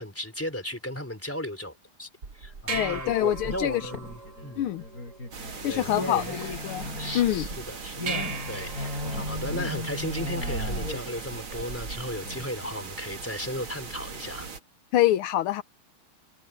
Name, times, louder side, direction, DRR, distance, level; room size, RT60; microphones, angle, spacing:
voice 1, 0.0-4.7 5.7-6.4 7.0-7.2 7.6-14.5, left 1 dB, 5° left, 3.8 m, -35 dB
sound 1, 2.2-12.2, right 5 dB, 50° right, 2.6 m, -39 dB
voice 2, 2.7-3.8 4.6-4.8 5.6-6.9 7.2-7.5 14.9-15.6, left 13 dB, 80° left, 1.6 m, -25 dB
sound 2, 3.7-12.7, left 2 dB, 40° left, 7.7 m, -36 dB
sound 3, 5.3-14.6, right 5 dB, 70° right, 3.4 m, -40 dB
omnidirectional pair, 2.4 m